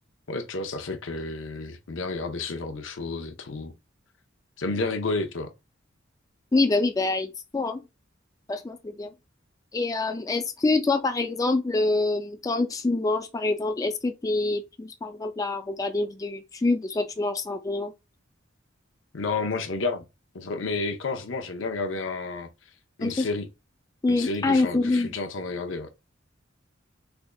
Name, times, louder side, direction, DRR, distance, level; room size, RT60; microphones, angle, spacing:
voice 1, 0.3-3.7 4.6-5.5 19.1-20.0 20.3-22.5 23.0-23.5 24.1-25.9, left 3 dB, 80° left, 0.7 m, -31 dB
voice 2, 6.5-7.8 8.5-9.1 9.7-17.9 23.0-23.3 24.0-25.1, left 2 dB, 20° left, 0.3 m, -26 dB
3.6 x 3.4 x 2.2 m
head